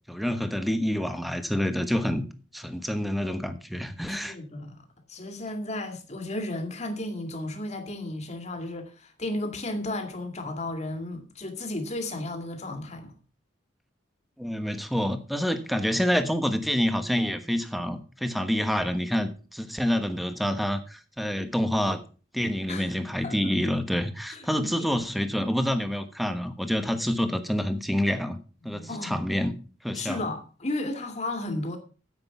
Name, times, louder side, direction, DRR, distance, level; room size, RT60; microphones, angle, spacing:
voice 1, 0.1-2.2 2.5-4.3 14.4-22.0 22.3-28.4 28.6-29.6 29.8-30.2, equal, ahead, 1.1 m, -27 dB
voice 2, 4.1-13.1 22.7-23.5 24.3-24.9 28.6-29.3 29.9-31.8, left 1 dB, 35° left, 2.3 m, -34 dB
9.8 x 7.9 x 5.9 m
head